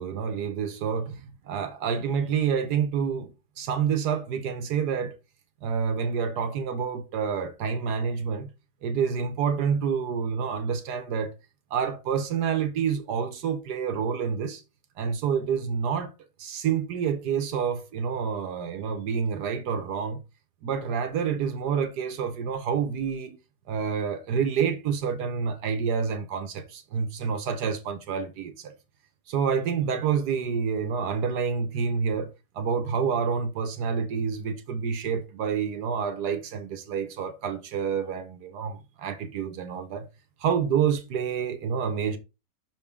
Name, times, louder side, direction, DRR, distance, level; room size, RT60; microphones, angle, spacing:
voice 1, 0.0-5.2 5.6-8.5 8.8-11.4 11.7-14.6 15.0-16.1 16.4-20.2 20.6-23.4 23.7-28.7 29.3-40.1 40.4-42.2, right 6 dB, 80° right, 1.4 m, -28 dB
6.1 x 6.0 x 3.6 m
omnidirectional pair, 1.8 m